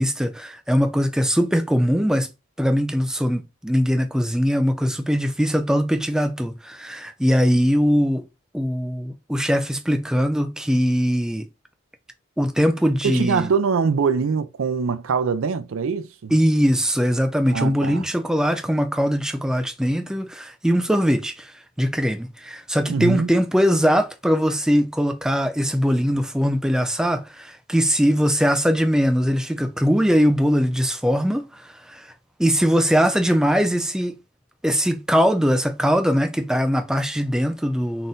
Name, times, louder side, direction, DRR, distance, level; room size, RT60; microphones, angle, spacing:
voice 1, 0.0-2.3 2.6-8.3 8.5-11.5 12.4-13.5 16.3-32.1 32.4-34.2 34.6-38.1, equal, 5° right, 0.3 m, -21 dB
voice 2, 13.0-16.4 17.5-18.0 22.9-23.4, right 5 dB, 85° right, 0.4 m, -23 dB
3.9 x 2.5 x 3.9 m
head